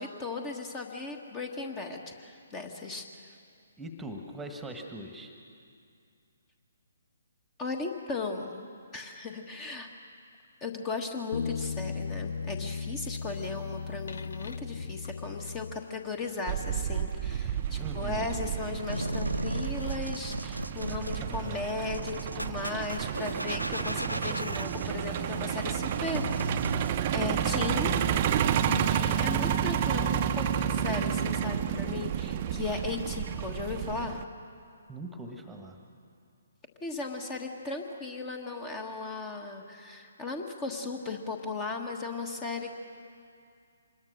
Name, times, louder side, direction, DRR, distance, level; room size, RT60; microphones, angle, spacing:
voice 1, 0.0-3.3 7.6-8.7 8.9-9.9 10.6-26.6 27.1-28.3 28.5-34.2 36.8-42.7, left 3 dB, 20° left, 4 dB, 1.5 m, -36 dB
voice 2, 3.8-5.3 17.8-18.3 20.9-21.7 34.9-35.8, right 1 dB, 5° right, 4 dB, 1.5 m, -41 dB
sound 1, 11.3-16.2, left 5 dB, 55° left, 0.6 m, -36 dB
Truck, 16.5-34.2, right 9 dB, 30° right, 0.7 m, -30 dB
sound 2, 18.9-26.9, equal, 90° right, 0.8 m, -36 dB
25.0 x 21.0 x 6.5 m, 2.4 s
figure-of-eight pair, 135°, 0 cm